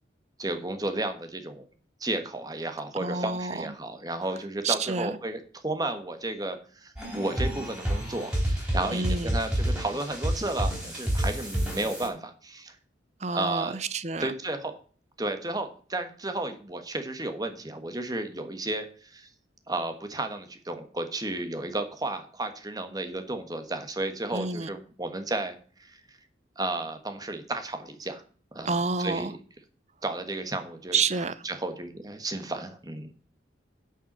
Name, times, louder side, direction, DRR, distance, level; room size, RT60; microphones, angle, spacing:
voice 1, 0.4-1.6 2.0-12.8 13.3-13.8 14.2-14.8 15.2-19.3 19.7-25.5 25.8-26.0 26.6-28.2 28.5-28.7 29.0-29.4 30.0-31.0 31.4-33.1, right 2 dB, 20° right, 1.3 m, -33 dB
voice 2, 3.0-3.7 4.6-5.1 8.9-9.4 13.2-14.3 24.3-24.7 28.7-29.3 30.9-31.3, right 4 dB, 40° right, 0.6 m, -29 dB
sound 1, 7.0-12.1, right 1 dB, 5° right, 4.2 m, -29 dB
9.9 x 5.6 x 7.4 m
head